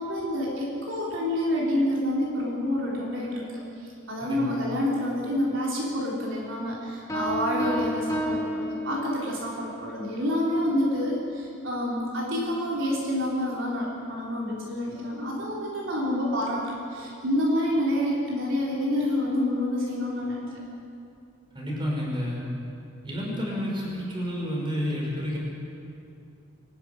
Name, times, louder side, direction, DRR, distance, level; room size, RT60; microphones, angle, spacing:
voice 1, 0.0-3.5 3.8-20.6, left 1 dB, 60° right, -5 dB, 3.8 m, -28 dB
sound 1, 7.1-9.5, equal, 15° left, 3.0 m, -30 dB
voice 2, 21.5-22.4 23.0-25.4, equal, 20° right, -3 dB, 5.7 m, -30 dB
24.0 x 12.0 x 9.8 m, 2.5 s
head